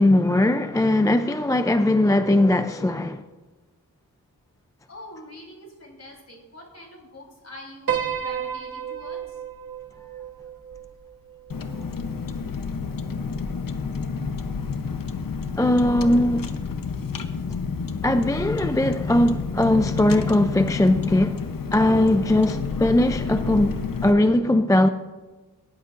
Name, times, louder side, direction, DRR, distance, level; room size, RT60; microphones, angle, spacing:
voice 1, 0.0-3.2 15.6-16.6 18.0-21.4 21.7-24.9, left 1 dB, 10° left, 0.4 m, -20 dB
voice 2, 4.9-9.4, left 1 dB, 45° left, 3.7 m, -44 dB
Piano, 7.9-12.3, right 8 dB, 70° right, 1.3 m, -32 dB
Car, 11.5-24.1, left 5 dB, 65° left, 0.9 m, -29 dB
17.5 x 11.0 x 2.5 m
wide cardioid pair, 80°, 37 cm